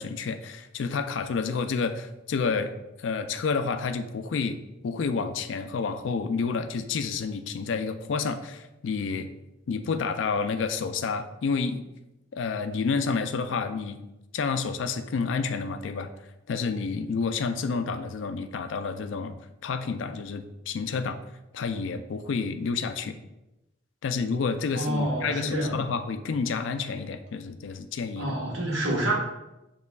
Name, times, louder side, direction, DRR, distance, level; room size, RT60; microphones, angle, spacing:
voice 1, 0.0-2.7 3.0-9.3 9.7-11.9 12.3-14.0 14.3-16.1 16.5-19.4 19.6-21.2 21.5-23.2 24.0-28.3, left 5 dB, 70° left, 9 dB, 0.4 m, -29 dB
voice 2, 24.7-25.8 28.2-29.1, right 1 dB, 80° right, -3 dB, 1.4 m, -28 dB
6.5 x 3.0 x 2.3 m, 0.97 s
head